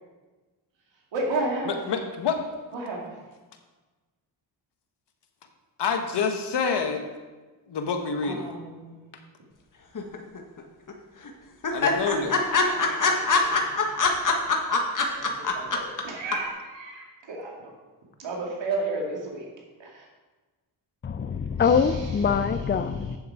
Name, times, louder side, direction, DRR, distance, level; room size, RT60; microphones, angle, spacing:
voice 1, 1.1-1.8 2.7-3.2 8.2-9.2 12.7-13.8 15.2-17.7 18.2-19.5 19.8-20.1 21.6-22.4, right 2 dB, 75° right, -1 dB, 2.6 m, -33 dB
voice 2, 1.6-2.4 5.8-7.0 7.7-8.5 11.7-12.4, left 5 dB, 65° left, 5 dB, 1.4 m, -27 dB
sound 1, 9.9-10.6 10.9-11.0 11.2-11.3 11.6-16.0 16.3-16.4, left 4 dB, 45° left, 1.6 m, -23 dB
voice 3, 21.0-23.2, left 6 dB, 25° left, 11 dB, 0.5 m, -24 dB
8.9 x 7.2 x 4.8 m, 1.3 s
cardioid pair, 60°, 44 cm